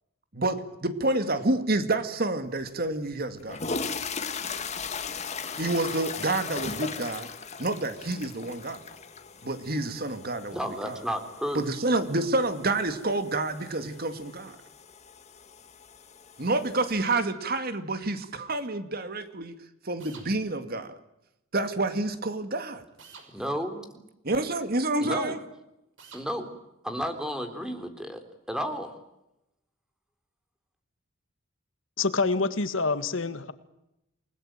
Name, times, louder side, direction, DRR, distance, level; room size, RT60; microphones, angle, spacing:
voice 1, 0.3-3.6 5.5-7.3 7.6-8.8 9.4-11.0 11.5-14.6 16.4-19.6 19.8-20.9 21.5-22.8 24.2-25.4, right 2 dB, 50° right, 10 dB, 2.3 m, -28 dB
sound 1, 2.7-2.8 3.3-17.0, left 5 dB, 35° left, 2.1 m, -38 dB
voice 2, 10.5-11.6 23.3-23.9 25.0-25.4 26.1-26.5 26.8-28.2 28.5-28.9, equal, 5° right, 7 dB, 3.6 m, -32 dB
sound 2, 17.0-17.3 20.0-20.3 23.0-23.3 26.0-26.3, right 5 dB, 70° right, 5.9 m, -48 dB
voice 3, 32.0-33.5, left 3 dB, 80° left, 12 dB, 1.8 m, -26 dB
29.0 x 20.0 x 9.0 m, 0.87 s
head